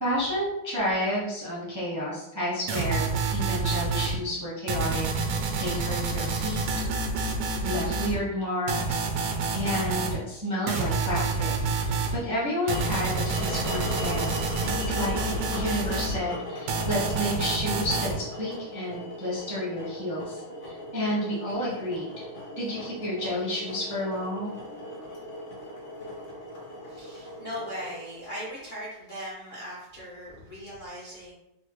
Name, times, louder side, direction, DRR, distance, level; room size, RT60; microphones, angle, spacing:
voice 1, 0.0-3.1 3.3-5.1 5.6-6.6 7.6-11.5 11.8-14.3 14.6-22.1 22.6-24.5, equal, 25° right, -8 dB, 0.3 m, -31 dB
sound 1, 2.7-4.2 4.7-8.2 8.7-10.2 10.7-12.2 12.7-16.2 16.7-18.2, right 3 dB, 90° right, 1.5 m, -28 dB
sound 2, 12.6-28.7, left 1 dB, 55° left, 0.8 m, -38 dB
voice 2, 26.9-31.3, equal, 80° left, -8 dB, 0.4 m, -39 dB
4.2 x 2.1 x 3.0 m, 0.86 s
omnidirectional pair, 2.3 m